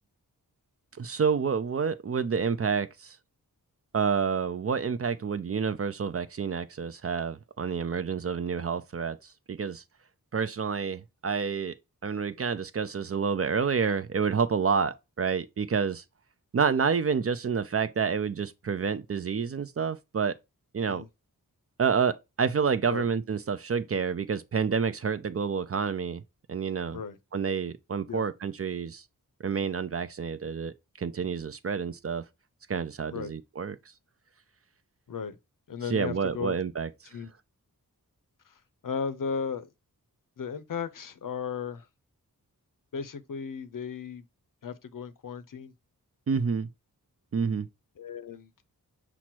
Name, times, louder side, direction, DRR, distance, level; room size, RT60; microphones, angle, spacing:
voice 1, 1.0-3.2 3.9-9.2 9.5-9.8 10.3-11.7 12.0-16.0 16.5-20.4 20.7-21.0 21.8-26.2 26.5-27.0 27.3-29.0 29.4-32.2 32.7-33.8 35.9-36.9 46.3-46.7 47.3-47.7, right 6 dB, 40° right, 0.4 m, -28 dB
voice 2, 35.7-36.5 37.1-37.3 38.5-39.7 40.4-41.9 42.9-44.2 44.6-45.7 48.0-48.5, left 6 dB, 60° left, 0.6 m, -35 dB
5.9 x 2.0 x 4.3 m
wide cardioid pair, 55°, 36 cm